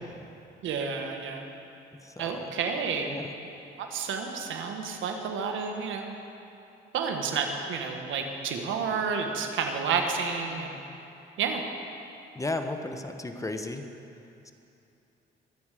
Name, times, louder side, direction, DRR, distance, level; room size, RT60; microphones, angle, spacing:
voice 1, 0.6-1.4 2.2-3.2 3.8-6.1 6.9-10.8 11.4-11.6, right 5 dB, 80° right, 3 dB, 1.6 m, -30 dB
voice 2, 2.0-2.5 3.0-3.3 12.4-13.8 14.4-14.5, left 2 dB, 15° left, 6 dB, 1.0 m, -34 dB
23.0 x 9.1 x 5.0 m, 2.7 s
cardioid pair, 90°, 20 cm